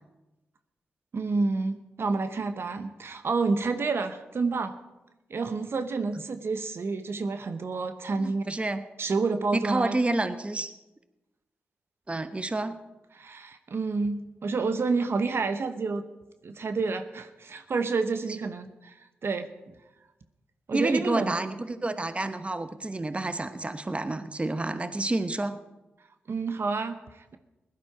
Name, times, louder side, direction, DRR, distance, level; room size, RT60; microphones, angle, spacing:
voice 1, 1.1-4.7 5.3-8.4 9.0-10.0 13.1-16.0 16.4-19.0 19.2-19.7 20.7-21.3 26.3-27.4, right 4 dB, 60° right, 9 dB, 0.9 m, -29 dB
voice 2, 8.2-8.8 9.5-10.7 12.1-12.8 20.7-25.6, right 2 dB, 25° right, 10 dB, 1.0 m, -29 dB
16.5 x 11.5 x 4.9 m, 1.0 s
supercardioid pair, 45°, 5 cm